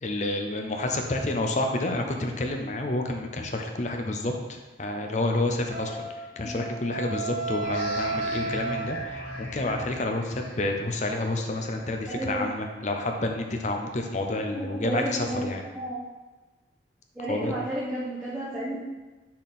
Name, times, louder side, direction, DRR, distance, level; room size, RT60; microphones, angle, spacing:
voice 1, 0.0-6.0 6.4-15.6 17.3-17.6, left 2 dB, 40° left, 3 dB, 0.6 m, -29 dB
Wind instrument woodwind instrument, 5.7-9.7, right 3 dB, 40° right, 0.9 m, -33 dB
sound 1, 7.6-12.9, left 1 dB, 70° left, 1.9 m, -41 dB
voice 2, 12.1-12.4 14.5-16.0 17.1-18.8, right 1 dB, 5° right, -10 dB, 1.1 m, -32 dB
6.4 x 3.8 x 4.2 m, 1.2 s
head